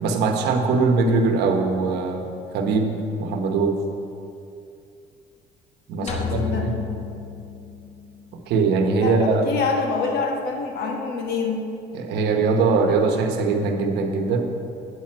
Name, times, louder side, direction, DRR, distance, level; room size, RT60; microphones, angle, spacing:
voice 1, 0.0-2.3 2.5-3.8 5.9-6.7 8.5-9.4 11.9-14.5, right 4 dB, 80° right, 4 dB, 1.0 m, -21 dB
voice 2, 6.0-6.9 9.0-11.6, left 4 dB, 70° left, 1 dB, 1.3 m, -27 dB
sound 1, 6.1-8.4, left 7 dB, 40° left, 1.0 m, -32 dB
8.3 x 7.4 x 4.4 m, 2.6 s
cardioid pair, 110°, 17 cm